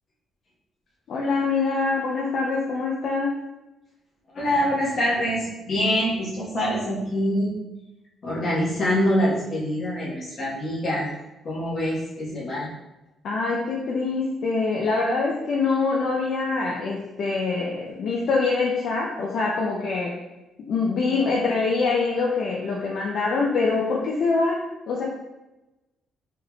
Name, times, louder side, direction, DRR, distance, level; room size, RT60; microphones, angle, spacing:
voice 1, 1.1-3.3 13.2-20.1 20.7-25.0, left 4 dB, 65° left, -3 dB, 0.5 m, -24 dB
voice 2, 4.3-7.5 8.2-11.1 11.4-12.7, equal, 50° left, -5 dB, 1.3 m, -25 dB
3.5 x 3.1 x 2.3 m, 1.0 s
cardioid pair, 90°, 0 cm